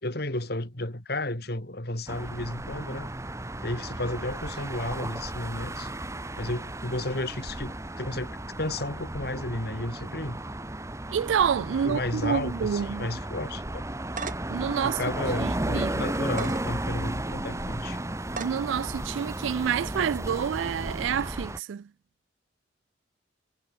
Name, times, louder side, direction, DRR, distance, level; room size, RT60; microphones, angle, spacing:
voice 1, 0.0-3.1 3.6-5.9 6.4-10.4 11.8-13.8 14.8-18.0, left 1 dB, 55° left, 3.9 m, -33 dB
sound 1, 2.1-21.6, right 1 dB, 15° right, 1.5 m, -34 dB
voice 2, 11.1-13.1 14.5-15.0 15.4-15.9 18.4-21.9, right 8 dB, 85° right, 0.4 m, -28 dB
sound 2, 14.2-14.6 15.1-15.2 16.2-16.6 17.3-17.4 18.3-18.6, right 5 dB, 45° right, 2.0 m, -36 dB
head